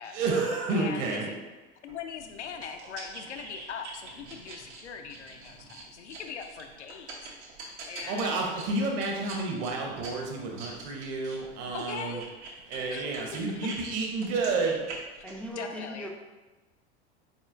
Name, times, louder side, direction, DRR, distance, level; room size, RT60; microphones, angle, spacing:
voice 1, 0.0-1.3 7.6-7.7 8.1-12.2 12.7-14.8, right 3 dB, 50° right, 0 dB, 1.0 m, -30 dB
voice 2, 0.7-1.4 1.8-7.3 7.9-8.4 11.7-12.3 12.9-13.1 15.6-16.1, left 6 dB, 85° left, 6 dB, 0.5 m, -40 dB
sound 1, 1.9-13.8 14.1-15.5, right 3 dB, 80° right, 1.1 m, -45 dB
voice 3, 15.2-16.1, right 1 dB, 5° left, -1 dB, 0.3 m, -39 dB
4.2 x 4.2 x 2.6 m, 1.2 s
hypercardioid pair, 85°, 34 cm